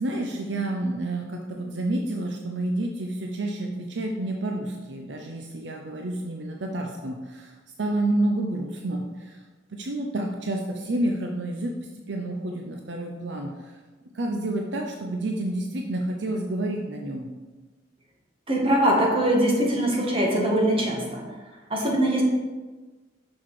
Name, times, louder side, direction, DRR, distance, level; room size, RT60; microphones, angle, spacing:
voice 1, 0.0-7.5 7.8-9.3 9.7-11.7 12.1-13.5 14.1-17.3, right 1 dB, 65° right, 2 dB, 0.7 m, -29 dB
voice 2, 18.5-21.2 21.7-22.2, right 1 dB, 30° right, -2 dB, 1.6 m, -22 dB
6.2 x 6.0 x 4.7 m, 1.3 s
head